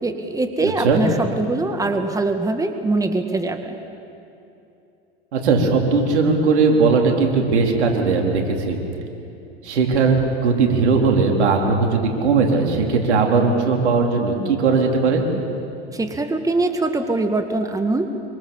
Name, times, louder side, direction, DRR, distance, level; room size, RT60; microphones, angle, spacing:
voice 1, 0.0-3.7 15.9-18.1, right 2 dB, 10° right, 6 dB, 1.8 m, -22 dB
voice 2, 0.6-1.0 5.3-8.8 9.6-15.3, right 4 dB, 80° right, 1 dB, 4.2 m, -18 dB
26.0 x 25.0 x 7.3 m, 2.8 s
hypercardioid pair, 100°, 33 cm